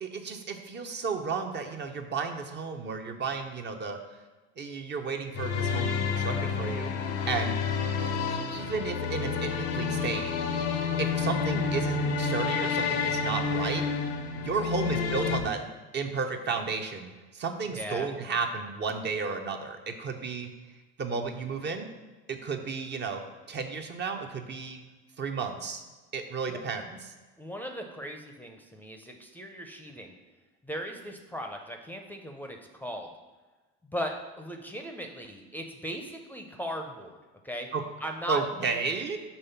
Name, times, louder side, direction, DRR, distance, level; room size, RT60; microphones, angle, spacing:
voice 1, 0.0-4.0 4.6-7.6 8.0-10.3 11.0-13.8 14.3-15.6 15.9-20.5 21.0-21.9 22.3-23.2 23.5-24.8 25.2-25.8 26.1-27.1 37.7-37.8 38.3-39.2, right 5 dB, 35° right, 5 dB, 0.6 m, -33 dB
sound 1, 5.4-15.4, left 5 dB, 80° left, 0.7 m, -29 dB
voice 2, 17.7-18.1 26.5-26.6 27.4-30.1 30.6-33.1 33.9-37.2 37.4-37.7 38.0-38.8, equal, 5° left, 3 dB, 0.5 m, -38 dB
5.5 x 3.2 x 5.6 m, 1.2 s
supercardioid pair, 90°, 30 cm